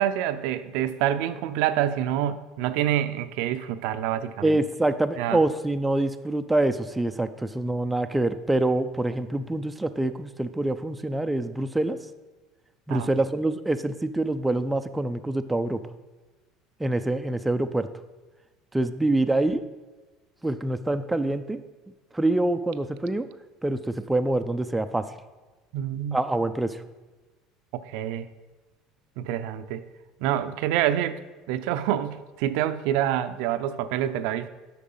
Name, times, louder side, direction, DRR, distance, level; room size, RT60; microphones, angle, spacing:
voice 1, 0.0-4.6 5.2-5.4 12.9-13.1 25.7-26.2 27.7-28.3 29.2-29.8 30.2-31.2 31.5-34.5, right 11 dB, 75° right, 11 dB, 0.5 m, -27 dB
voice 2, 4.4-12.0 12.9-15.8 16.8-17.9 18.7-19.6 20.4-21.6 22.1-23.3 23.6-25.1 26.1-26.8, right 2 dB, 5° right, 8 dB, 0.4 m, -25 dB
8.4 x 6.0 x 5.6 m, 1.2 s
cardioid pair, 130°, 0 cm